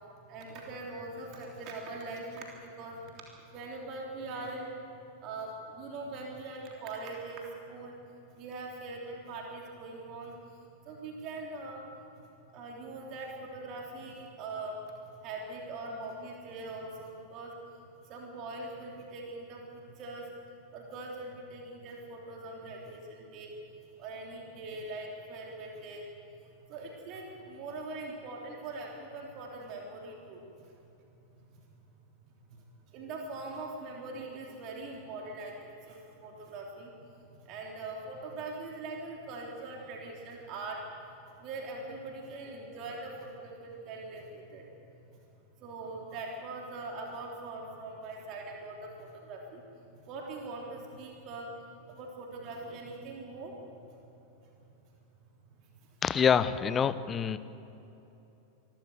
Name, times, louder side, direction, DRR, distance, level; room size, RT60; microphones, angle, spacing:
voice 1, 0.3-3.1 3.5-4.8 5.2-8.0 8.3-10.3 10.9-11.8 12.5-17.5 18.0-20.3 20.7-23.5 24.0-26.1 26.7-30.7 31.4-31.5 32.5-40.8 41.4-44.7 45.6-49.6 50.0-53.8 55.9-56.0, right 2 dB, 40° right, -1 dB, 3.5 m, -42 dB
voice 2, 56.0-57.4, left 7 dB, 25° left, 15 dB, 0.8 m, -26 dB
26.0 x 13.5 x 8.1 m, 3.0 s
figure-of-eight pair, 90°, 0 cm